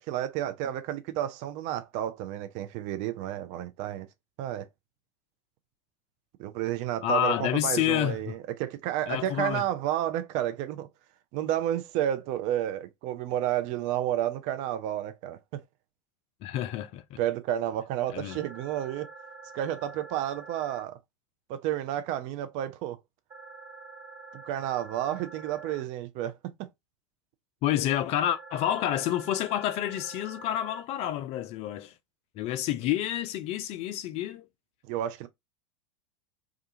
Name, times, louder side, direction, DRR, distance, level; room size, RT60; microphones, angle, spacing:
voice 1, 0.0-4.1 4.4-4.7 6.4-10.9 11.3-15.6 17.2-19.1 19.5-21.0 21.5-23.0 24.3-26.7 34.9-35.3, right 12 dB, 45° right, 0.5 m, -31 dB
voice 2, 7.0-8.4 9.1-9.6 16.4-17.2 18.1-18.4 27.6-31.9 32.4-34.5, left 11 dB, 40° left, 0.4 m, -29 dB
sound 1, 18.3-20.8 23.3-25.8 28.3-30.8, right 3 dB, 20° right, 1.0 m, -47 dB
2.4 x 2.3 x 2.7 m
figure-of-eight pair, 85°, 16 cm